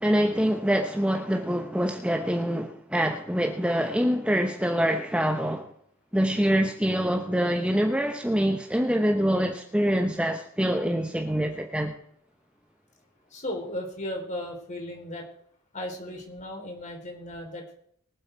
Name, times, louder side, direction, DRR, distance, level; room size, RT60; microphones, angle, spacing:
voice 1, 0.0-5.7 6.1-11.9, equal, 5° right, 0.9 m, -25 dB
voice 2, 13.3-15.2 15.7-17.7, left 1 dB, 35° left, 3.8 m, -36 dB
22.5 x 8.0 x 4.5 m
head